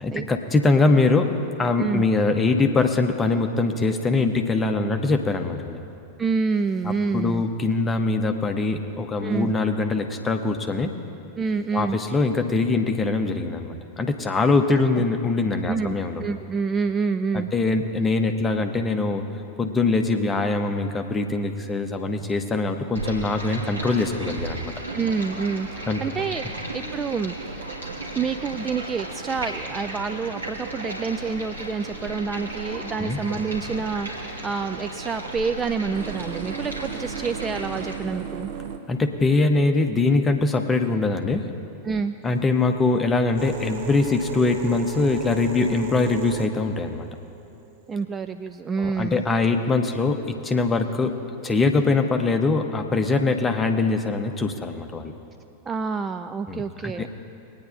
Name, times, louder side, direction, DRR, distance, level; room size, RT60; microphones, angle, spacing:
voice 1, 0.0-5.8 6.8-11.0 11.7-16.2 17.3-19.2 19.6-24.7 25.9-26.0 33.0-33.2 38.9-41.5 42.2-47.1 48.8-51.2 51.4-55.1 56.5-57.1, left 3 dB, 15° left, 5 dB, 0.9 m, -23 dB
voice 2, 6.2-7.4 9.2-9.5 11.4-12.0 15.0-15.1 15.7-17.5 24.9-27.3 28.1-38.5 41.8-42.1 47.9-49.2 55.7-57.1, right 5 dB, 20° right, 8 dB, 0.3 m, -28 dB
Stream, 22.9-37.9, right 2 dB, 75° right, 2.2 m, -35 dB
sound 1, 35.3-41.4 42.2-48.0 49.0-49.5, right 8 dB, 50° right, 0.8 m, -36 dB
21.5 x 9.6 x 2.6 m, 2.6 s
figure-of-eight pair, 90°, 0 cm